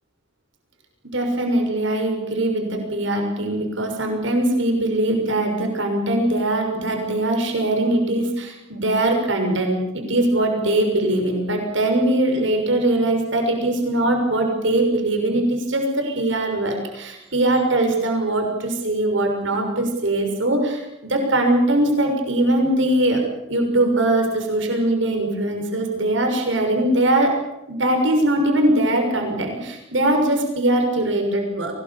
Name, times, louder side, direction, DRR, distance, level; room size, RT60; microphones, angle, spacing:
voice 1, 1.1-23.2 23.5-27.3 27.7-31.7, right 1 dB, 75° right, 3 dB, 6.4 m, -21 dB
23.5 x 20.0 x 8.6 m, 0.88 s
head